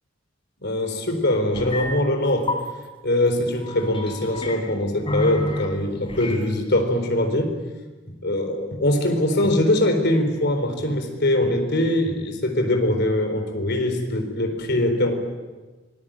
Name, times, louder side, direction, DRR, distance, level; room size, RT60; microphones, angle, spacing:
voice 1, 0.6-2.6 3.0-7.5 8.1-15.1, left 1 dB, 55° left, 6 dB, 4.2 m, -22 dB
sound 1, 1.5-1.9 2.2-2.6 3.6-4.6 5.1-5.7 6.1-6.4, left 2 dB, 25° left, 3.5 m, -30 dB
25.0 x 20.5 x 8.9 m, 1.3 s
head